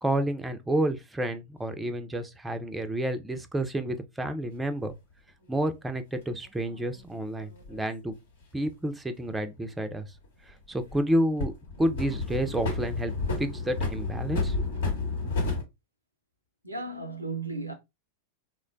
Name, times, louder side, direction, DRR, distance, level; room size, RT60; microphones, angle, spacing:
voice 1, 0.0-4.9 5.5-8.1 8.5-10.1 10.7-11.5 11.8-13.1 13.4-14.6, right 1 dB, 10° right, 0.4 m, -30 dB
sound 1, 4.9-5.0 6.6-7.8 10.1-11.0 11.4-15.6, left 3 dB, 65° left, 0.9 m, -31 dB
voice 2, 16.6-17.7, right 3 dB, 85° right, 0.4 m, -34 dB
3.1 x 2.1 x 2.4 m
figure-of-eight pair, 90°, 0 cm